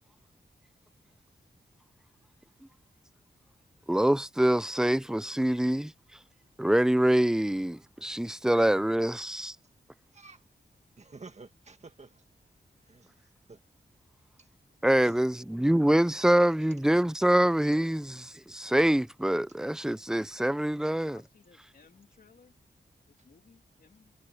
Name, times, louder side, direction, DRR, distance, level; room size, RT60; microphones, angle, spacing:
voice 1, 3.9-5.9 6.6-9.5 14.8-21.2, right 1 dB, 5° right, 0.4 m, -25 dB
voice 2, 10.1-10.4 11.0-12.3 12.9-13.6 14.4-14.5 15.0-15.1 20.3-20.4, right 4 dB, 40° right, 1.8 m, -51 dB
voice 3, 20.8-22.5 23.1-24.1, left 5 dB, 55° left, 3.0 m, -60 dB
wide cardioid pair, 150°, 18 cm